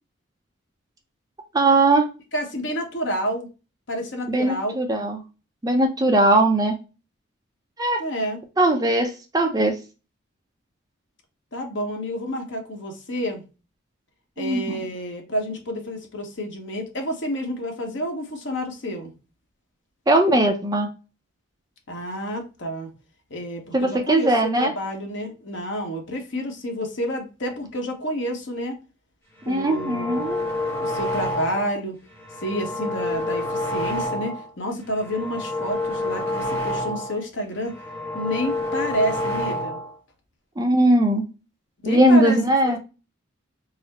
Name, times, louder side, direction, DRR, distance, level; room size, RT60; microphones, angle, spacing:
voice 1, 1.5-2.1 4.3-5.2 5.6-6.8 7.8-8.0 8.6-9.8 14.4-14.8 20.1-20.9 23.7-24.7 29.5-30.5 40.6-41.3 41.9-42.8, right 1 dB, 20° right, 3 dB, 0.5 m, -19 dB
voice 2, 2.3-3.5 3.9-4.8 8.0-8.4 11.5-13.4 14.4-19.1 21.9-22.9 23.3-28.8 29.4-30.3 30.8-32.0 32.4-37.8 38.1-39.8 41.8-42.4 42.6-42.8, equal, 65° left, 3 dB, 0.9 m, -29 dB
sound 1, 29.4-31.8 32.1-34.5 34.9-37.2 37.6-39.9, left 1 dB, 10° left, 1.0 m, -28 dB
4.0 x 2.0 x 4.1 m, 0.31 s
head